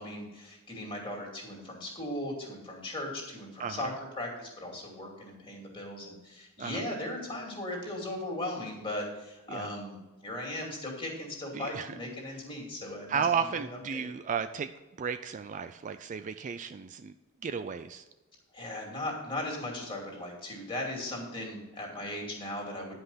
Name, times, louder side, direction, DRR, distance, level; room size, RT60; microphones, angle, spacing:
voice 1, 0.0-14.0 18.5-23.0, left 1 dB, 25° left, 0 dB, 2.6 m, -38 dB
voice 2, 3.6-3.9 6.6-6.8 9.5-9.7 11.5-12.0 13.1-14.7 15.0-17.1 17.4-18.0, right 6 dB, 35° right, 10 dB, 0.3 m, -33 dB
10.0 x 5.4 x 5.7 m, 1.1 s
head